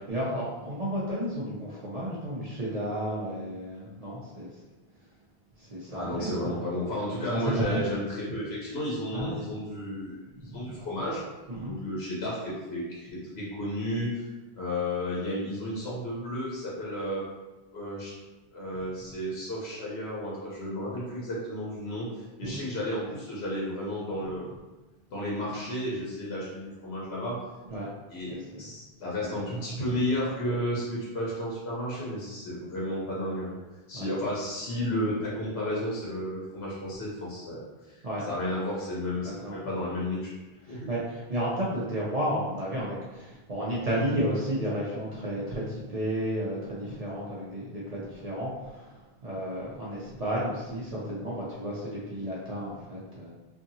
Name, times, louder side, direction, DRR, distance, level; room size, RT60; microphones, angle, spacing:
voice 1, 0.0-4.5 5.6-6.5 7.3-7.8 9.1-9.4 10.4-10.7 11.5-11.8 22.4-22.6 27.7-27.9 28.3-28.6 29.2-29.4 33.9-34.1 38.0-38.3 39.3-39.6 40.7-48.9 49.2-53.3, equal, 45° right, -7 dB, 0.5 m, -32 dB
voice 2, 5.9-10.2 10.5-11.2 11.6-14.3 14.6-17.2 17.7-18.1 18.5-24.5 25.1-27.4 28.1-33.5 33.9-38.0 38.3-40.2 40.7-40.9, left 1 dB, 80° left, -6 dB, 1.0 m, -32 dB
2.7 x 2.6 x 2.6 m, 1.1 s
omnidirectional pair, 1.0 m